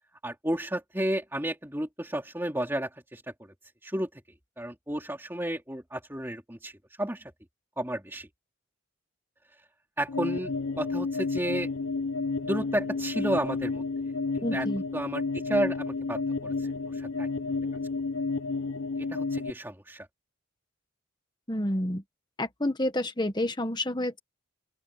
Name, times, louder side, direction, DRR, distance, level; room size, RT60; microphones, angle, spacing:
voice 1, 0.2-3.5 3.8-4.2 4.6-7.3 7.8-8.3 10.0-10.5 10.8-11.7 12.4-13.8 14.3-14.7 14.9-17.3 19.0-20.1, right 1 dB, 10° right, 2.8 m, -32 dB
sound 1, 10.1-19.5, left 3 dB, 90° left, 0.7 m, -31 dB
voice 2, 14.4-14.8 21.5-22.0 22.4-24.2, left 1 dB, 20° left, 1.4 m, -29 dB
open air
head